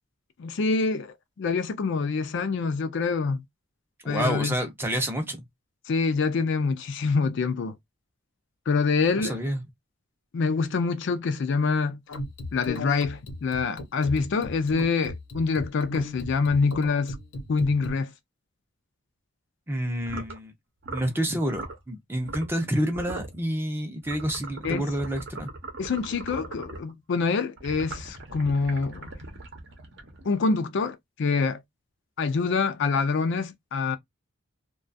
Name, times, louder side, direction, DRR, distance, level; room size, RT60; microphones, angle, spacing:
voice 1, 0.4-3.4 4.1-4.6 5.9-7.8 8.7-9.4 10.3-12.0 12.5-17.2 17.5-18.1 24.6-24.8 25.8-29.1 30.2-31.6 32.2-34.0, left 4 dB, 55° left, 0.4 m, -26 dB
voice 2, 4.0-5.4 9.2-9.6 19.7-20.5 20.9-25.5, equal, 10° right, 0.5 m, -28 dB
sound 1, 12.1-17.9, left 2 dB, 75° left, 0.8 m, -36 dB
sound 2, 20.0-20.4 20.8-21.1 21.5-21.8 22.2-22.6 22.9-23.3 24.0-26.9 27.6-30.4, right 2 dB, 55° right, 0.7 m, -39 dB
2.3 x 2.2 x 2.5 m
head